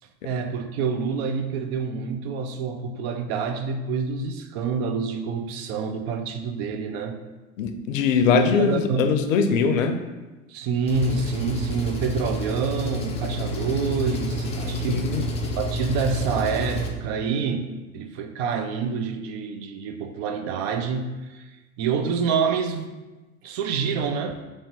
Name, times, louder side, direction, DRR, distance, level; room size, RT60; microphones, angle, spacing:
voice 1, 0.2-7.2 8.3-9.2 10.5-15.1 15.6-21.4 21.8-23.0 23.4-24.3, right 5 dB, 50° right, 0.5 m, -27 dB
voice 2, 7.6-10.0 14.9-15.3, left 6 dB, 70° left, 0.5 m, -22 dB
Engine, 10.9-16.9, equal, 15° left, 0.3 m, -29 dB
3.0 x 2.8 x 4.4 m
hypercardioid pair, 85°, 41 cm